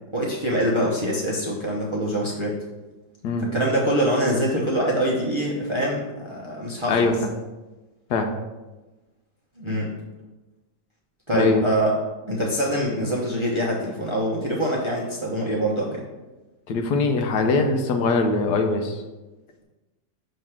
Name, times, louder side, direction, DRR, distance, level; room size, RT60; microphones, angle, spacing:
voice 1, 0.1-2.6 3.4-7.1 9.6-9.9 11.3-11.9 12.3-16.0, equal, 25° right, -3 dB, 0.7 m, -24 dB
voice 2, 16.7-19.0, left 3 dB, 75° left, 4 dB, 1.2 m, -22 dB
6.6 x 3.2 x 5.8 m, 1.1 s
omnidirectional pair, 1.8 m